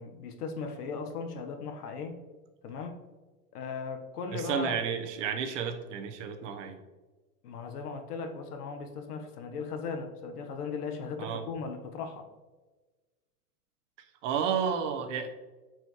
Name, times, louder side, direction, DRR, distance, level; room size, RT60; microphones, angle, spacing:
voice 1, 0.0-2.2 2.6-3.1 3.5-4.8 7.4-12.3, left 5 dB, 80° left, 5 dB, 1.3 m, -37 dB
voice 2, 4.3-6.8 11.2-11.4 14.2-15.3, right 7 dB, 50° right, 5 dB, 1.0 m, -31 dB
9.3 x 4.7 x 3.1 m, 1.3 s
supercardioid pair, 150°, 46 cm